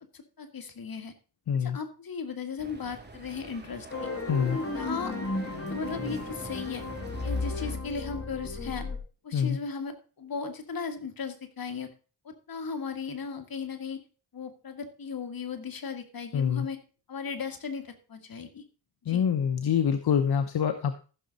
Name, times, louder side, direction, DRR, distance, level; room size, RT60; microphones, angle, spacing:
voice 1, 0.1-1.1 1.6-4.1 4.7-5.3 5.7-6.8 7.2-8.9 9.2-11.9 12.2-14.0 14.3-16.8 17.1-18.6 19.1-19.2, left 5 dB, 65° left, 6 dB, 1.9 m, -36 dB
voice 2, 1.5-1.8 4.3-4.6 9.3-9.6 16.3-16.7 19.1-20.9, left 7 dB, 85° left, 9 dB, 0.8 m, -25 dB
Ambience London Street A, 2.6-7.8, right 2 dB, 25° right, 2.6 m, -46 dB
sound 1, 3.9-9.0, left 2 dB, 35° left, 2.4 m, -34 dB
14.5 x 6.3 x 4.0 m, 0.35 s
cardioid pair, 60°, 37 cm